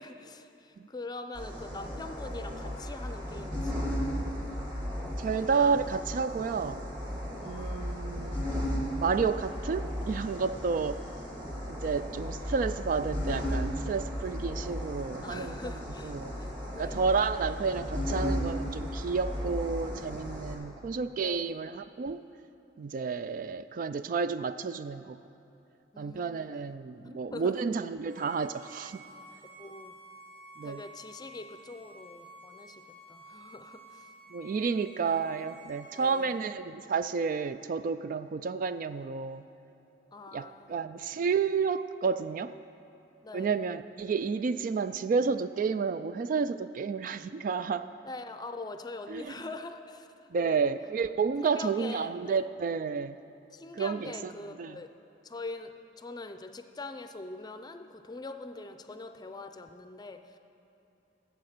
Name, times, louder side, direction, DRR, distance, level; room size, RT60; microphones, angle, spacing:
voice 1, 0.0-4.1 7.4-8.1 15.2-17.1 21.2-21.6 25.9-26.5 27.0-27.6 29.6-29.9 30.6-34.1 35.9-36.5 40.1-41.1 43.2-43.6 48.0-50.1 50.4-50.6 51.4-52.5 53.5-54.9 55.2-60.4, left 3 dB, 25° left, 8 dB, 0.5 m, -43 dB
sound 1, 1.4-20.5, equal, 25° right, 2.0 m, -35 dB
voice 2, 5.2-6.8 7.4-8.7 9.0-11.0 11.7-15.7 16.0-16.3 16.8-22.2 22.8-25.2 26.0-29.0 30.6-30.8 34.3-39.5 40.3-42.5 43.3-47.9 49.1-49.3 50.3-53.2 53.7-54.3 54.6-54.8, right 5 dB, 50° right, 12 dB, 0.3 m, -31 dB
Bowed string instrument, 28.1-36.3, right 1 dB, 70° right, 2.1 m, -52 dB
13.0 x 7.8 x 6.6 m, 3.0 s
head